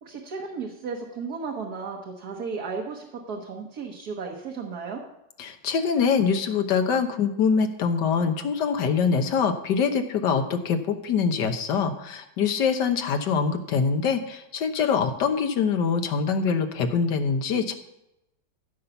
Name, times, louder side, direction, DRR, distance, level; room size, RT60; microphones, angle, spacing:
voice 1, 0.0-5.0, right 5 dB, 60° right, 0 dB, 1.7 m, -34 dB
voice 2, 5.4-17.7, left 6 dB, 70° left, 7 dB, 1.6 m, -24 dB
15.0 x 5.7 x 6.9 m, 0.87 s
omnidirectional pair, 1.9 m